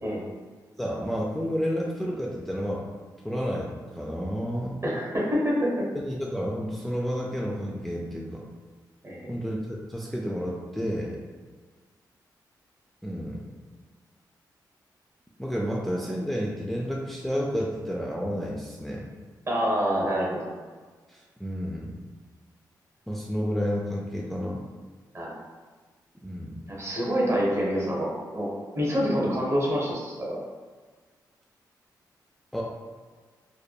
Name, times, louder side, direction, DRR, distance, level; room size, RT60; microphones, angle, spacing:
voice 1, 0.8-2.8 3.2-4.8 5.9-8.4 9.3-11.2 13.0-13.5 15.4-19.1 21.1-22.0 23.1-24.6 26.2-26.6 32.5-32.6, equal, ahead, -4 dB, 0.3 m, -30 dB
voice 2, 4.8-5.9 9.0-9.4 19.5-20.5 25.1-25.3 26.7-28.5 28.7-30.4, equal, 35° right, -4 dB, 0.9 m, -26 dB
3.0 x 2.1 x 2.2 m, 1.4 s
cardioid pair, 60°, 8 cm